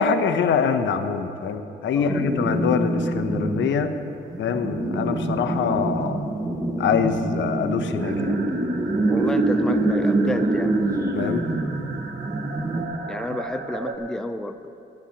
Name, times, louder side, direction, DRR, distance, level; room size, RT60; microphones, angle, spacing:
voice 1, 0.0-3.9 4.4-6.2 6.8-8.4 11.1-11.4, left 6 dB, 70° left, 9 dB, 0.8 m, -24 dB
sound 1, 2.1-12.9, right 2 dB, 20° right, 1.4 m, -25 dB
sound 2, 8.0-14.0, right 4 dB, 60° right, 1.2 m, -36 dB
voice 2, 9.1-10.7 13.1-14.7, left 1 dB, 5° left, 9 dB, 0.5 m, -30 dB
19.5 x 13.0 x 2.9 m, 2.7 s
cardioid pair, 90°, 20 cm